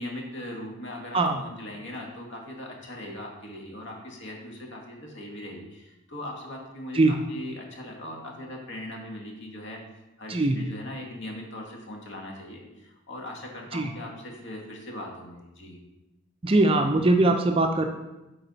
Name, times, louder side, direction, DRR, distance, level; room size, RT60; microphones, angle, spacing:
voice 1, 0.0-9.8 10.2-15.8, left 1 dB, 55° left, 0 dB, 1.4 m, -39 dB
voice 2, 16.4-17.9, right 2 dB, 25° right, 5 dB, 0.4 m, -21 dB
8.7 x 4.0 x 4.0 m, 1.0 s
head